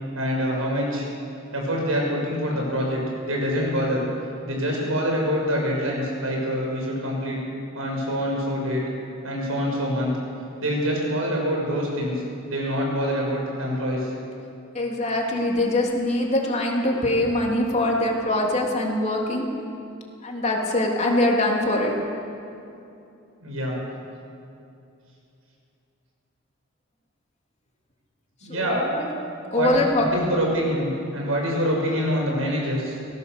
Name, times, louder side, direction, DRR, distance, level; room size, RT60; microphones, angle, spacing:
voice 1, 0.1-1.1 1.5-3.0 3.3-4.0 4.4-7.4 7.7-8.8 9.2-10.1 10.6-12.1 12.5-14.1 23.4-23.8 28.4-28.8 29.5-29.7 30.0-33.0, equal, 90° right, -1 dB, 6.5 m, -25 dB
voice 2, 14.7-19.4 20.2-21.9 28.5-29.1 29.5-30.1, left 1 dB, 35° left, -1 dB, 3.2 m, -23 dB
23.0 x 17.5 x 6.9 m, 2.7 s
head